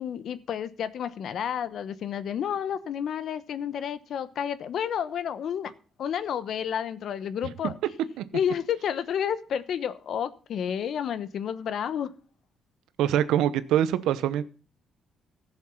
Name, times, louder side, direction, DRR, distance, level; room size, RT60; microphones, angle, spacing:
voice 1, 0.0-5.7 6.0-7.7 8.3-12.1, left 8 dB, 65° left, 14 dB, 1.0 m, -30 dB
voice 2, 13.0-14.4, right 11 dB, 85° right, 14 dB, 0.9 m, -24 dB
15.0 x 7.2 x 5.7 m, 0.39 s
cardioid pair, 90°, 0 cm